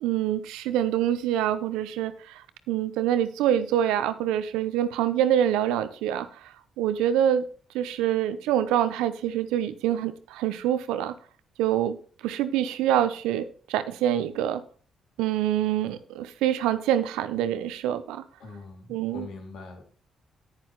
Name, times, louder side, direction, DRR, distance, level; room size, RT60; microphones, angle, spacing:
voice 1, 0.0-2.4 2.7-7.4 7.7-11.1 11.6-12.0 12.2-14.6 15.2-18.2 18.9-19.3, right 11 dB, 90° right, 12 dB, 0.8 m, -26 dB
voice 2, 18.4-19.8, left 3 dB, 75° left, 3 dB, 2.7 m, -42 dB
9.7 x 9.5 x 3.1 m, 0.42 s
supercardioid pair, 60°, 0 cm